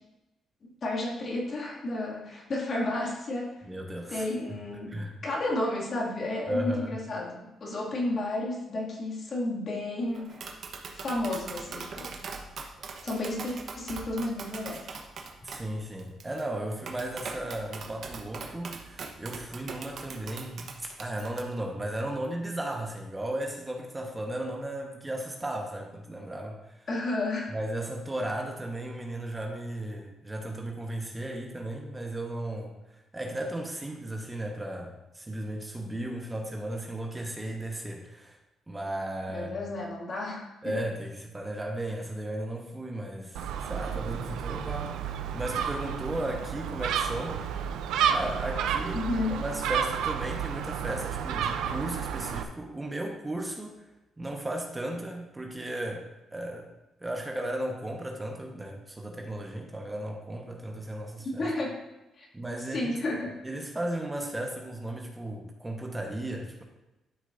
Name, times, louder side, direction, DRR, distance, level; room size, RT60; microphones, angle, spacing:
voice 1, 0.6-3.6 4.1-10.4 10.9-12.1 13.0-14.9 26.9-27.5 39.3-40.8 48.9-49.4 61.2-61.8 62.2-62.3 62.7-63.3, left 2 dB, 50° left, -3 dB, 2.3 m, -32 dB
voice 2, 3.6-4.6 4.9-5.1 6.5-7.0 15.4-26.9 27.5-38.4 38.7-39.6 40.6-47.4 48.1-53.8 54.2-56.7 57.0-61.5 62.3-63.0 63.4-66.6, right 1 dB, 15° right, 1 dB, 1.2 m, -35 dB
Tap, 10.1-21.4, right 4 dB, 60° right, 1.0 m, -41 dB
Gull seagull, 43.4-52.4, right 8 dB, 85° right, 0.5 m, -31 dB
11.5 x 6.2 x 2.6 m, 1.0 s
cardioid pair, 90°, 0 cm